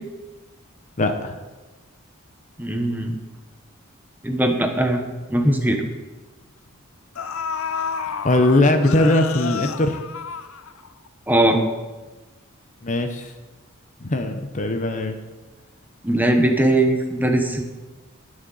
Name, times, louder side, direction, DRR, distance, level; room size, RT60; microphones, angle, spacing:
voice 1, 1.0-1.4 8.2-10.0 12.8-13.3 14.0-15.2, left 1 dB, 35° left, 6 dB, 0.8 m, -20 dB
voice 2, 2.6-3.2 4.2-5.0 5.3-5.8 11.3-11.6 16.0-17.6, right 1 dB, 10° right, 3 dB, 1.1 m, -20 dB
sound 1, 6.7-6.8 7.1-11.1 11.4-11.5, left 6 dB, 85° left, 0.6 m, -30 dB
19.0 x 6.4 x 4.1 m, 1.2 s
head